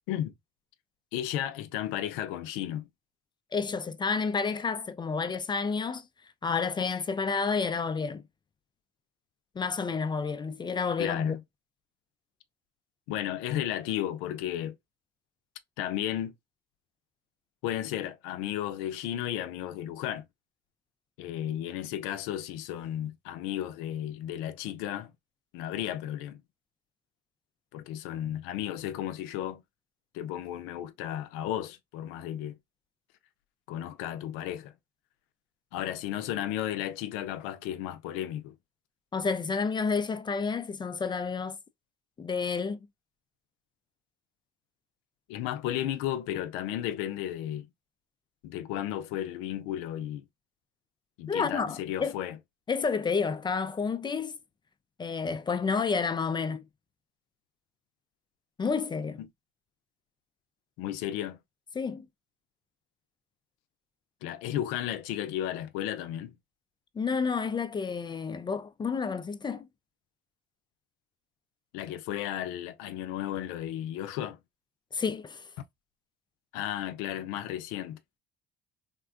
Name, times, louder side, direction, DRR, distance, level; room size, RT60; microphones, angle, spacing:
voice 1, 1.1-2.9 11.0-11.4 13.1-14.8 15.8-16.3 17.6-20.3 21.2-25.1 25.5-26.4 27.7-29.6 30.1-32.6 33.7-34.7 35.7-38.5 45.3-47.7 48.4-50.3 51.2-52.4 59.2-59.3 60.8-61.4 64.2-66.3 71.7-74.4 76.5-78.0, left 12 dB, 85° left, 0.5 m, -34 dB
voice 2, 3.5-6.1 6.4-8.2 9.6-11.4 39.1-41.6 42.2-42.8 51.3-52.2 52.7-54.4 55.0-56.6 58.6-59.2 61.8-62.1 67.0-69.7 74.9-75.4, left 5 dB, 25° left, 0.3 m, -30 dB
3.5 x 2.2 x 2.3 m
supercardioid pair, 90°, 20 cm